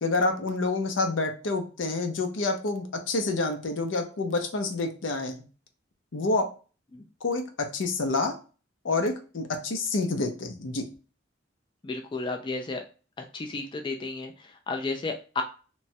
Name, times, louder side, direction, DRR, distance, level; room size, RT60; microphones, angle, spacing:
voice 1, 0.0-5.4 6.1-6.5 7.2-8.4 8.8-10.8, left 3 dB, 75° left, 6 dB, 0.6 m, -28 dB
voice 2, 11.8-12.8 13.2-15.4, left 3 dB, 25° left, 4 dB, 0.3 m, -33 dB
3.0 x 2.2 x 2.7 m, 0.35 s
head